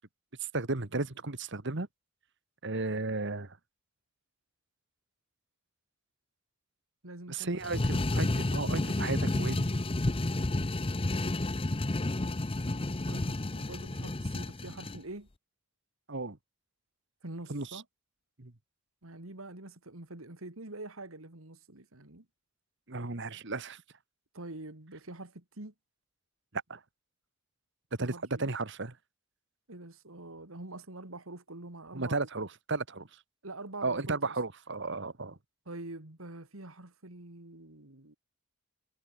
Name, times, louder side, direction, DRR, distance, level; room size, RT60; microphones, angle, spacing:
voice 1, 0.4-1.9 2.6-3.6 7.3-9.8 16.1-16.4 17.5-17.8 18.4-18.5 22.9-23.8 26.7-26.8 28.0-29.0 31.9-33.2 33.8-35.4, right 3 dB, 60° right, 1.7 m, -34 dB
voice 2, 7.0-7.9 13.1-15.3 17.2-17.8 19.0-22.3 24.3-25.7 28.0-28.4 29.7-32.2 33.4-34.3 35.7-38.2, right 2 dB, 80° right, 2.9 m, -45 dB
sound 1, 7.6-15.0, left 2 dB, 25° left, 0.8 m, -31 dB
head